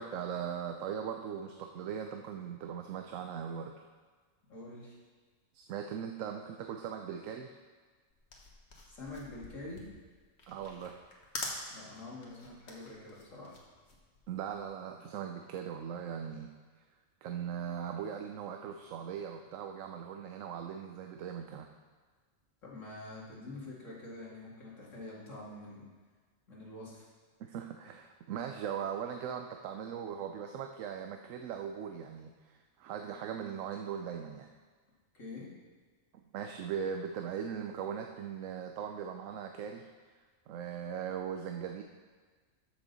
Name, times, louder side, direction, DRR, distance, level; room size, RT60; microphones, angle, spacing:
voice 1, 0.0-3.7 5.5-7.5 10.5-11.0 14.3-16.5 17.2-21.7 27.4-34.5 36.1-39.9 40.5-41.8, right 8 dB, 85° right, 4 dB, 1.0 m, -39 dB
voice 2, 4.5-4.9 8.9-9.9 11.7-13.6 22.6-25.9 26.5-27.0 35.1-35.5, left 2 dB, 80° left, -5 dB, 2.6 m, -46 dB
sound 1, 8.1-14.8, left 2 dB, 60° left, 1.6 m, -45 dB
13.0 x 6.4 x 4.0 m, 1.4 s
omnidirectional pair, 1.3 m